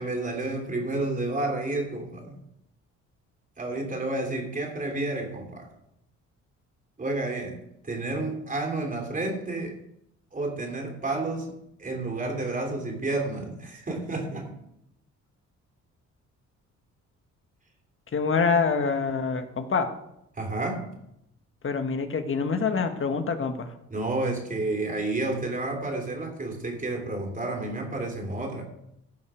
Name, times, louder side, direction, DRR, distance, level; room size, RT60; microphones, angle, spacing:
voice 1, 0.0-2.4 3.6-5.7 7.0-9.8 10.3-14.6 20.3-20.9 23.9-28.6, right 2 dB, 25° right, 2 dB, 3.3 m, -30 dB
voice 2, 18.1-19.9 21.6-23.7, left 5 dB, 45° left, 7 dB, 1.5 m, -26 dB
16.5 x 5.7 x 5.0 m, 0.80 s
cardioid pair, 90°, 30 cm